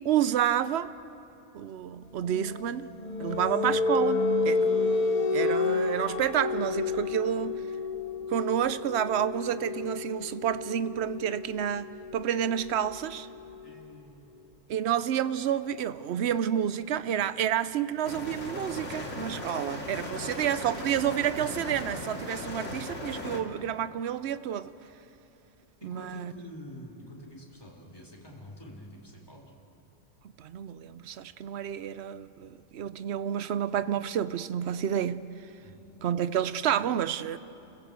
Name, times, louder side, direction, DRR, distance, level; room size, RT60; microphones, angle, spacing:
voice 1, 0.0-0.9 1.5-2.9 3.2-4.6 5.3-7.7 8.3-13.3 14.7-24.7 25.8-26.3 30.4-35.3 36.0-37.4, right 9 dB, 65° right, 0.9 m, -29 dB
sound 1, 2.2-13.8, left 3 dB, 40° left, 0.8 m, -30 dB
voice 2, 3.3-3.8 13.6-14.3 20.1-20.3 25.8-29.5 35.6-36.0, equal, 20° left, 3.8 m, -47 dB
sound 2, 18.0-23.4, left 1 dB, 80° left, 2.5 m, -37 dB
29.0 x 15.5 x 8.0 m
omnidirectional pair, 1.2 m